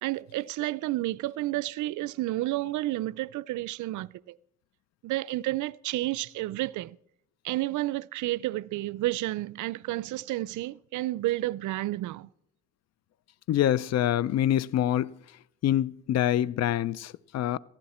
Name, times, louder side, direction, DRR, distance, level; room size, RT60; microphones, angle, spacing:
voice 1, 0.0-4.4 5.0-7.0 7.4-12.3, right 17 dB, 75° right, 0.5 m, -31 dB
voice 2, 13.5-15.1 15.6-17.6, left 11 dB, 60° left, 0.5 m, -25 dB
17.0 x 14.5 x 4.3 m
cardioid pair, 90°, 30 cm